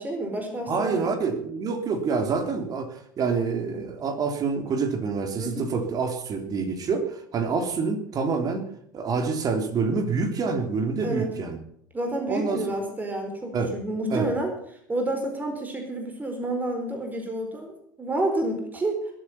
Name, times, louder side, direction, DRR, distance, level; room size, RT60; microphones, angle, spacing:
voice 1, 0.0-1.2 5.4-5.7 11.0-11.3 11.9-14.5 14.9-19.0, right 1 dB, 15° right, 3 dB, 4.4 m, -29 dB
voice 2, 0.7-8.7 8.9-11.6 12.3-12.8 13.5-13.7 14.1-14.3, right 4 dB, 40° right, 6 dB, 3.3 m, -27 dB
21.0 x 8.9 x 5.7 m, 0.66 s
hypercardioid pair, 75°, 10 cm